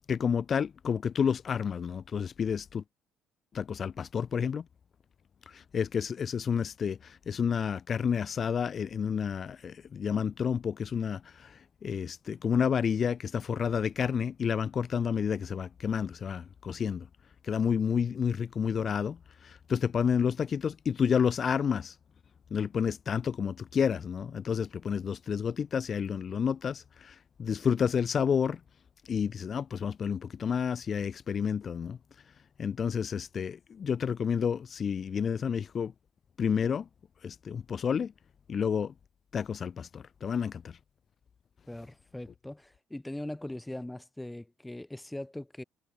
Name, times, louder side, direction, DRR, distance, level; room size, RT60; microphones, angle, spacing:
voice 1, 0.1-2.8 3.5-4.7 5.5-17.1 17.4-21.9 22.5-28.6 29.1-32.0 32.6-35.9 36.4-36.9 37.2-38.1 38.5-38.9 39.3-40.8, left 7 dB, 45° left, 2.2 m, -30 dB
voice 2, 41.7-45.6, left 1 dB, 10° left, 4.1 m, -40 dB
figure-of-eight pair, 50°, 0 cm